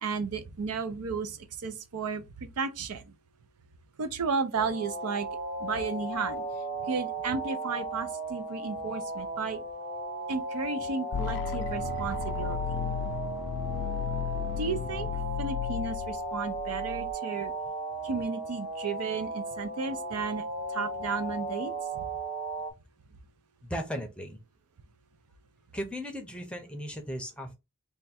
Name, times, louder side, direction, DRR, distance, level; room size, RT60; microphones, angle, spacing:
voice 1, 0.0-3.1 4.0-5.3 5.6-6.4 6.8-9.6 10.3-12.8 14.6-15.1 15.4-17.5 18.0-20.4 20.7-22.1, right 5 dB, 75° right, 0.5 m, -33 dB
sound 1, 4.5-22.7, right 2 dB, 50° right, 1.4 m, -36 dB
sound 2, 11.1-17.1, left 10 dB, 55° left, 0.3 m, -34 dB
voice 2, 23.6-24.4 25.7-27.5, equal, 5° left, 0.6 m, -36 dB
3.4 x 2.2 x 4.1 m
head